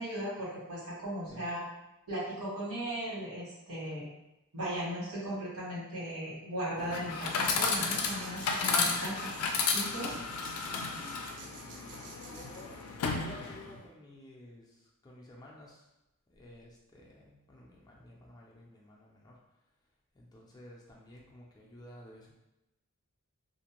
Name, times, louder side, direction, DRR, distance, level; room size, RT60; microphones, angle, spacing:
voice 1, 0.0-1.6 2.1-4.0 4.5-9.3 9.7-10.1, right 1 dB, 75° right, -7 dB, 1.4 m, -37 dB
Chatter / Coin (dropping), 6.8-13.8, left 4 dB, 85° left, 0.4 m, -33 dB
sound 1, 7.4-13.1, right 4 dB, 50° right, 0.4 m, -50 dB
voice 2, 10.9-12.8 13.2-15.8 16.3-19.4 20.1-22.3, left 1 dB, 20° left, -3 dB, 0.4 m, -53 dB
2.5 x 2.1 x 2.9 m, 0.92 s
head